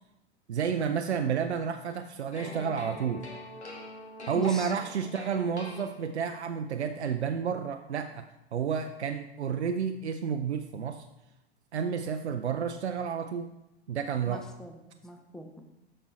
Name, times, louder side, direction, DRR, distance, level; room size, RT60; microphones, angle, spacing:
voice 1, 0.5-3.3 4.3-8.3 8.5-11.0 11.7-13.5 13.9-14.4, right 7 dB, 80° right, 7 dB, 0.5 m, -31 dB
sound 1, 2.3-6.4, left 2 dB, 85° left, 1.5 m, -44 dB
voice 2, 4.3-4.7 14.3-15.6, left 1 dB, ahead, 4 dB, 0.8 m, -43 dB
12.5 x 4.4 x 3.9 m, 0.94 s
figure-of-eight pair, 85°, 33 cm